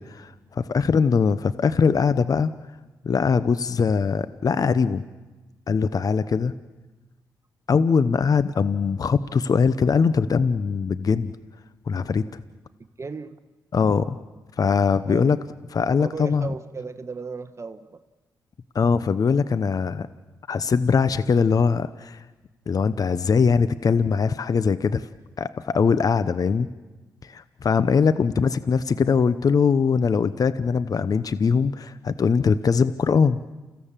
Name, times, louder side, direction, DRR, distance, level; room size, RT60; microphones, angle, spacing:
voice 1, 0.0-2.5 3.0-5.0 5.7-6.5 7.7-11.3 11.9-12.4 13.7-14.2 14.6-15.4 15.7-16.5 18.7-20.1 20.5-22.2 22.7-25.1 25.4-26.7 27.2-33.4, left 5 dB, 50° left, 14 dB, 0.8 m, -21 dB
voice 2, 13.0-13.4 15.1-15.4 16.0-18.0, right 4 dB, 35° right, 8 dB, 1.2 m, -35 dB
29.5 x 16.0 x 7.5 m, 1.2 s
cardioid pair, 60°, 8 cm